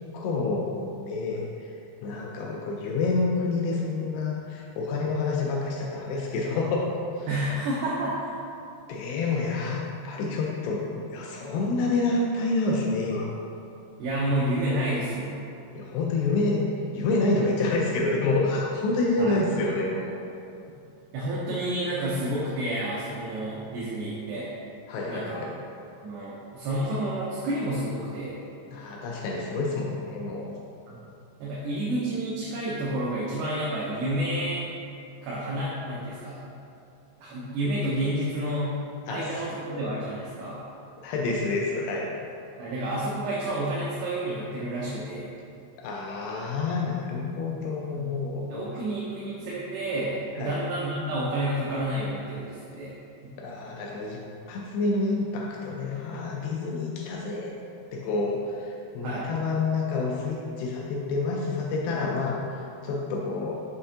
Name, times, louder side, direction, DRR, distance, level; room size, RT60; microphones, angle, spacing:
voice 1, 0.1-1.7 2.0-7.3 8.9-13.3 15.8-20.1 24.9-25.6 28.7-30.6 39.1-39.4 41.0-42.1 45.8-48.8 50.4-50.6 53.4-54.2 54.5-57.5 57.9-62.4 62.8-63.6, left 3 dB, 85° left, -1 dB, 2.3 m, -28 dB
voice 2, 7.3-8.3 14.0-15.4 19.2-19.4 21.1-24.5 25.1-25.4 26.0-28.4 30.9-31.0 31.4-34.7 35.2-36.4 37.2-38.8 39.1-40.6 42.6-45.3 47.9-48.0 48.5-52.9 53.2-53.4 59.0-59.3, right 1 dB, 80° right, -7 dB, 2.7 m, -30 dB
6.6 x 5.4 x 2.8 m, 2.6 s
omnidirectional pair, 5.1 m